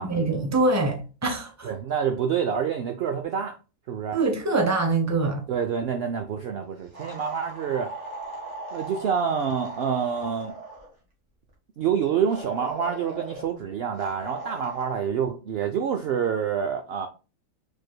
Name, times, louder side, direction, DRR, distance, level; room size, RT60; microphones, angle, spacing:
voice 1, 0.1-1.7 4.1-5.4, right 3 dB, 15° right, 0.7 m, -24 dB
voice 2, 1.6-3.6 3.9-4.2 5.5-7.9 8.7-10.5 11.8-17.1, right 7 dB, 70° right, 0.5 m, -27 dB
sound 1, 6.9-10.9 12.3-13.5 14.0-14.9, right 2 dB, 50° right, 1.8 m, -39 dB
4.8 x 4.5 x 2.3 m
omnidirectional pair, 1.6 m